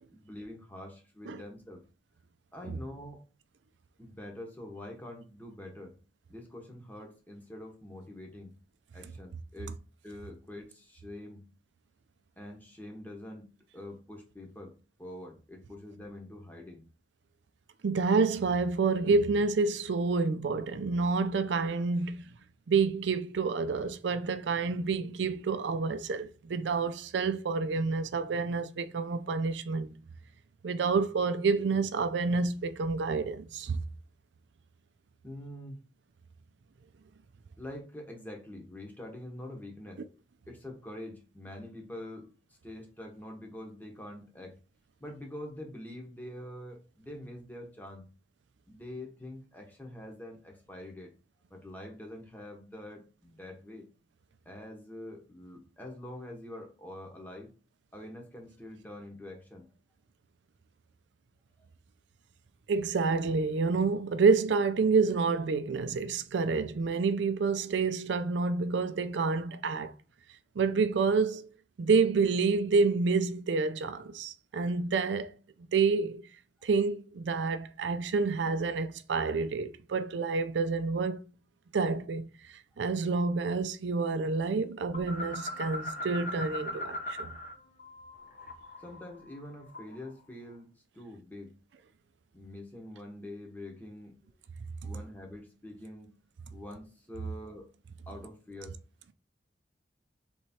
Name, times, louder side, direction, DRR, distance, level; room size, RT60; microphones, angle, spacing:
voice 1, 0.1-1.8 2.5-3.2 4.0-6.0 6.3-8.6 8.9-9.8 10.0-11.4 12.4-16.8 35.2-35.8 37.6-40.1 40.5-42.3 42.6-44.6 45.0-48.1 48.7-51.1 51.5-53.9 54.4-57.5 57.9-59.7 88.8-91.6 92.3-94.2 94.8-96.1 96.5-97.7 98.1-98.8, left 1 dB, 10° left, 0.9 m, -45 dB
voice 2, 17.8-22.2 22.7-29.9 30.6-33.8 62.7-69.9 70.6-71.5 71.8-75.3 75.7-76.2 76.6-81.2 81.7-82.3 82.8-87.3, right 4 dB, 90° right, 0.4 m, -28 dB
sound 1, 84.9-87.5 87.8-90.1, left 1 dB, 45° left, 0.7 m, -39 dB
3.5 x 3.2 x 4.2 m
head